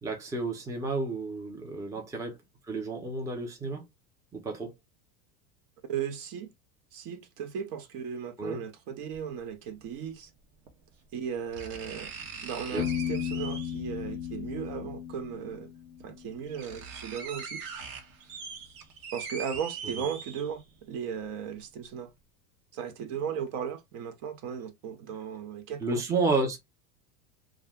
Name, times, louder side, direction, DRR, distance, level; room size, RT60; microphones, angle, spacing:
voice 1, 0.0-2.4 2.7-3.8 4.3-4.7 8.4-8.6 12.7-12.9 25.8-26.6, right 3 dB, 5° right, 0.5 m, -31 dB
voice 2, 5.8-6.5 6.9-10.3 11.1-12.1 12.4-15.7 16.0-17.6 19.1-22.1 22.7-26.0, right 7 dB, 50° right, 0.6 m, -36 dB
sound 1, 9.1-9.2 10.7-10.8 11.5-13.9 15.3-15.4 16.0-16.1 16.3-20.8 21.2-21.3, right 6 dB, 70° right, 0.9 m, -41 dB
Piano, 12.8-16.5, left 9 dB, 45° left, 0.6 m, -35 dB
2.3 x 2.2 x 3.4 m
supercardioid pair, 120°, 48 cm